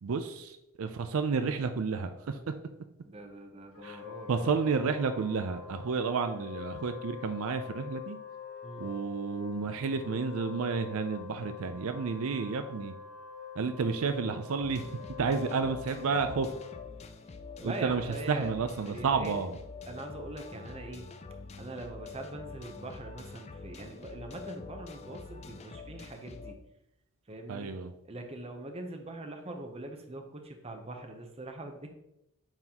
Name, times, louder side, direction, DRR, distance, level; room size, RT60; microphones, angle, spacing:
voice 1, 0.0-2.4 3.8-4.0 4.3-8.2 8.8-12.9 13.6-14.8 15.2-16.5 17.6-18.0 18.3-19.5 27.5-27.9, right 5 dB, 70° right, 8 dB, 0.4 m, -31 dB
voice 2, 3.0-4.5 8.6-8.9 15.5-15.6 17.6-18.5 18.9-19.4 19.8-21.1 21.6-26.6 27.3-27.8 28.0-31.9, right 2 dB, 25° right, 4 dB, 0.7 m, -42 dB
Wind instrument woodwind instrument, 3.7-17.1, left 9 dB, 75° left, 1.5 m, -45 dB
sound 1, 14.6-26.5, left 4 dB, 30° left, 0.3 m, -46 dB
8.8 x 4.0 x 2.9 m, 0.87 s
head